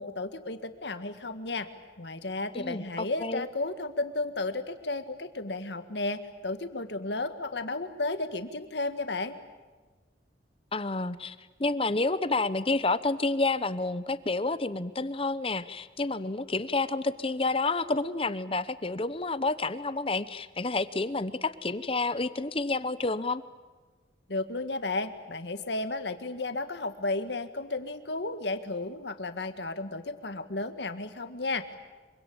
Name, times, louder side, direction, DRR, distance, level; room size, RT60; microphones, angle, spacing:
voice 1, 0.0-1.7 2.0-9.4 24.3-31.8, left 2 dB, 75° left, 9 dB, 1.8 m, -33 dB
voice 2, 2.5-3.4 10.7-23.4, left 3 dB, 30° left, 14 dB, 0.8 m, -29 dB
26.0 x 24.5 x 8.8 m, 1.3 s
head